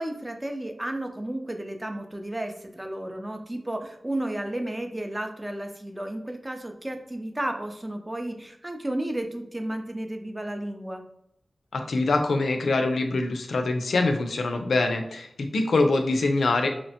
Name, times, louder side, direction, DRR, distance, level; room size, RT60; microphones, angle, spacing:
voice 1, 0.0-11.0, right 1 dB, 20° right, 4 dB, 0.4 m, -33 dB
voice 2, 11.7-16.7, left 2 dB, 85° left, 4 dB, 0.3 m, -24 dB
2.9 x 2.1 x 2.7 m, 0.75 s
cardioid pair, 50°, 0 cm